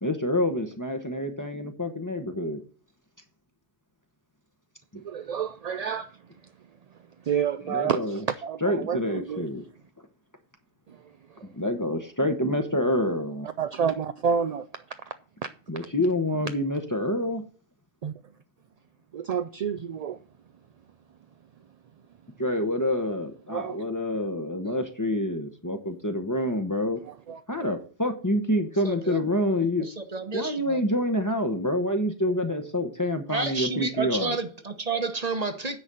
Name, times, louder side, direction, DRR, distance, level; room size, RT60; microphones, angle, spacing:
voice 1, 0.0-2.6 4.9-5.0 7.6-8.3 8.6-9.6 11.4-13.5 15.7-17.4 22.4-27.0 27.5-29.9 30.3-34.4, left 1 dB, 20° left, 0.9 m, -27 dB
voice 2, 4.9-6.1 7.3-9.5 13.6-14.7 18.0-18.1 19.1-20.2 23.5-23.8 24.7-24.8 27.1-27.7, right 7 dB, 55° right, 0.4 m, -29 dB
voice 3, 28.8-29.2 29.8-30.8 33.3-35.8, right 3 dB, 40° right, 1.1 m, -30 dB
9.8 x 4.1 x 7.5 m
omnidirectional pair, 1.1 m